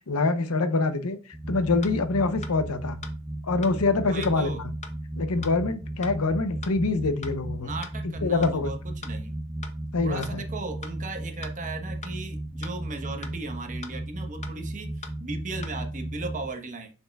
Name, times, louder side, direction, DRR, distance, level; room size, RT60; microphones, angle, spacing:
voice 1, 0.1-3.0 3.4-4.7 5.2-7.7 8.2-8.7 9.9-10.4, left 3 dB, 85° left, 0.7 m, -25 dB
sound 1, 1.3-16.5, right 1 dB, 10° right, 0.5 m, -35 dB
sound 2, 1.8-1.9 2.4-2.5 3.0-3.1 3.6-3.7 4.2-4.3 4.8-4.9 5.4-5.5 6.0-6.1 6.6-6.7 7.2-7.3 7.8-7.9 8.4-8.5 9.0-9.1 9.6-9.7 10.2-10.3 10.8-10.9 11.4-11.5 12.0-12.1 12.6-12.7 13.2-13.3 13.8-13.9 14.4-14.5 15.0-15.1 15.6-15.7, left 5 dB, 30° left, 0.7 m, -40 dB
voice 2, 4.1-4.6 7.6-9.4 10.0-16.9, right 3 dB, 35° right, 1.2 m, -37 dB
6.7 x 6.6 x 2.3 m
head